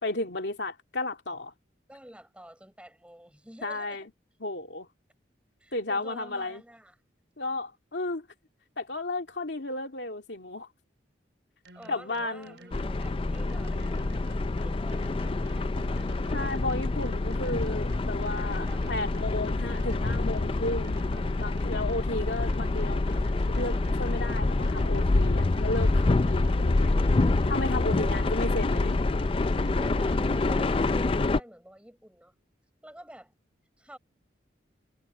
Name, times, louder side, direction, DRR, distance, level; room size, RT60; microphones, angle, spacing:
voice 1, 0.0-1.5 3.6-4.1 4.4-4.9 5.7-6.6 7.4-8.2 8.8-10.7 11.9-12.5 16.3-21.0 21.4-26.9 27.5-29.0, left 2 dB, 70° left, 2.4 m, -33 dB
voice 2, 1.9-4.1 5.6-7.0 11.7-14.3 14.6-16.1 17.1-17.4 18.6-19.3 22.2-22.3 26.8-27.4 28.0-28.3 29.8-32.4 32.8-33.3 33.8-34.0, equal, 5° right, 6.5 m, -48 dB
sound 1, 11.6-31.3, right 1 dB, 70° right, 4.4 m, -52 dB
sound 2, 12.7-31.4, left 2 dB, 30° left, 0.4 m, -26 dB
head